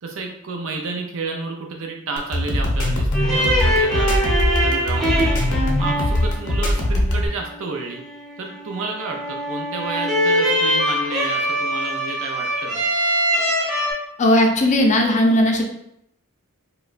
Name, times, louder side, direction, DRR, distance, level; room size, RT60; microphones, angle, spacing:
voice 1, 0.0-4.3 4.6-5.4 5.8-8.0 8.4-12.8, right 3 dB, 65° right, 2 dB, 0.5 m, -31 dB
sound 1, 2.2-7.3, left 1 dB, 75° left, 0.7 m, -21 dB
sound 2, 3.1-13.9, equal, ahead, 0.8 m, -23 dB
voice 2, 14.2-15.6, left 1 dB, 35° left, 2 dB, 0.5 m, -17 dB
4.9 x 2.2 x 2.5 m, 0.74 s
head